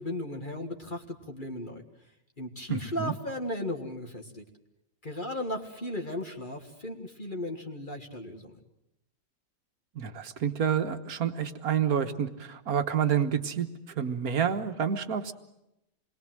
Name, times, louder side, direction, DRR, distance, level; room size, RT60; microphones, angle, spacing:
voice 1, 0.0-1.8 2.4-4.4 5.0-8.5, left 1 dB, 30° left, 3 dB, 1.9 m, -36 dB
voice 2, 2.7-3.1 10.0-13.7 14.0-15.3, right 8 dB, 60° right, 9 dB, 1.7 m, -28 dB
27.5 x 21.5 x 7.7 m, 0.86 s
omnidirectional pair, 1.8 m